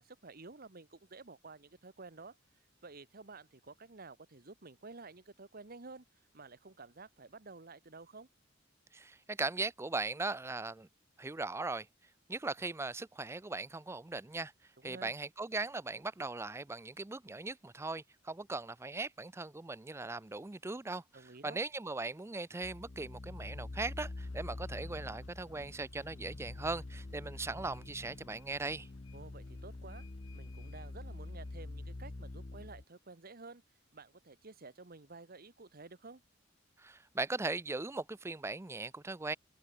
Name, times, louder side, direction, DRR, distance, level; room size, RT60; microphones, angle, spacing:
voice 1, 0.0-2.4 2.8-6.0 6.3-8.3 14.8-15.1 21.1-21.6 29.1-30.1 30.3-33.6 33.9-36.2, right 3 dB, 50° right, 1.3 m, -52 dB
voice 2, 8.9-10.9 11.2-11.9 12.3-14.5 14.8-21.0 21.4-28.9 36.8-39.4, right 3 dB, 15° right, 0.4 m, -39 dB
sound 1, 22.6-32.8, left 2 dB, 35° left, 0.6 m, -46 dB
sound 2, 24.2-32.7, left 2 dB, 75° left, 3.0 m, -61 dB
head